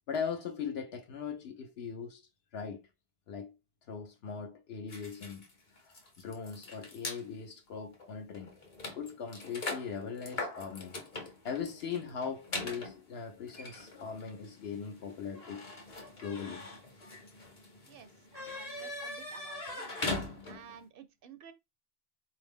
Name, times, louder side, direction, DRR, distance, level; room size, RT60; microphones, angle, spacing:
voice 1, 0.1-2.2 2.5-2.9 3.3-3.5 3.9-5.4 5.8-8.5 8.9-15.7 16.2-16.7, left 6 dB, 75° left, 0.9 m, -40 dB
sound 1, 4.9-7.2 7.9-8.1 8.3-20.8, left 2 dB, 40° left, 0.8 m, -42 dB
voice 2, 17.9-19.8 20.5-21.5, right 7 dB, 65° right, 0.8 m, -52 dB
3.9 x 2.7 x 3.5 m
omnidirectional pair, 1.1 m